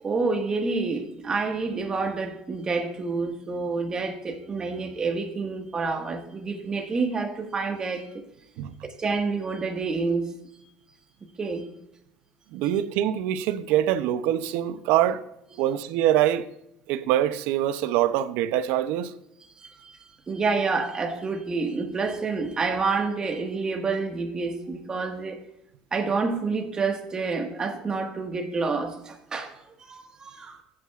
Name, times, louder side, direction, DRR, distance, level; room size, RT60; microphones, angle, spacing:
voice 1, 0.0-8.2 9.0-10.7 11.4-11.7 19.4-20.0 20.3-25.4 25.9-30.6, right 4 dB, 25° right, 1.6 m, -28 dB
voice 2, 12.5-15.2 15.6-16.5 16.9-19.1, right 12 dB, 80° right, 0.6 m, -24 dB
15.0 x 8.7 x 2.4 m
cardioid pair, 120°, 3 cm